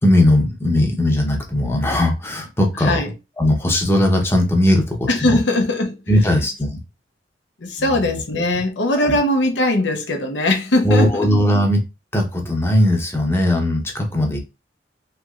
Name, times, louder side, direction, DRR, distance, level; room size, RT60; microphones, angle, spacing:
voice 1, 0.0-3.0 3.4-5.4 6.1-6.7 7.8-8.1 10.8-11.8 12.1-14.4, left 1 dB, 15° left, 0.8 m, -18 dB
voice 2, 2.7-3.1 5.1-6.4 7.6-11.3, left 1 dB, 85° left, 0.8 m, -20 dB
3.3 x 3.0 x 2.4 m
head